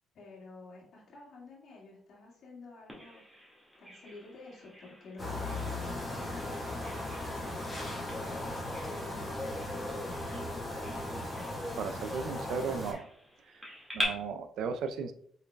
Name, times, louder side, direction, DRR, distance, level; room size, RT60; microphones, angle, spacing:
voice 1, 0.1-3.2 3.8-10.4, left 3 dB, 70° left, -3 dB, 1.8 m, -51 dB
Bird vocalization bird call bird song, 2.9-14.0, equal, 5° right, 1.8 m, -45 dB
sound 1, 5.2-12.9, left 1 dB, 20° left, 1.8 m, -37 dB
voice 2, 11.8-13.1 13.5-13.6 13.9-15.1, right 5 dB, 80° right, 8 dB, 0.4 m, -35 dB
5.6 x 3.9 x 2.2 m, 0.68 s
cardioid pair, 90°, 0 cm